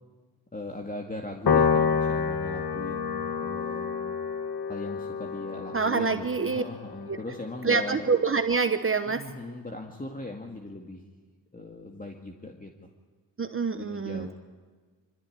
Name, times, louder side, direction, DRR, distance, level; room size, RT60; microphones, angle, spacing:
voice 1, 0.5-4.2 4.7-8.1 9.1-11.0 11.5-12.7 13.7-14.3, left 2 dB, 20° left, 2 dB, 2.2 m, -39 dB
Piano, 1.5-8.0, left 6 dB, 60° left, 2.0 m, -29 dB
voice 2, 5.7-6.6 7.1-7.2 7.6-9.2 13.4-14.3, right 4 dB, 30° right, 8 dB, 1.0 m, -26 dB
25.0 x 14.0 x 9.8 m, 1.5 s
cardioid pair, 85°, 43 cm